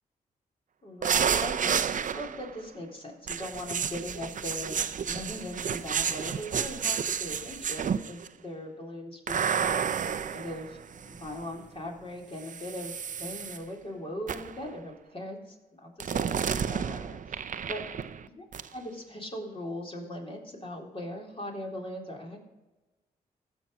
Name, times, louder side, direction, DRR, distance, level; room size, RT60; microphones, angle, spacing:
voice 1, 0.8-4.8 5.0-10.1 10.3-17.8 18.4-18.5 18.7-22.4, left 1 dB, 30° left, -1 dB, 3.6 m, -40 dB
sound 1, 1.0-2.6 3.3-8.3 9.3-11.4 12.4-13.6 14.3-14.6 16.0-18.3 18.5-18.7, right 7 dB, 50° right, 0.6 m, -31 dB
15.5 x 6.1 x 4.1 m, 1.1 s
supercardioid pair, 45°, 17 cm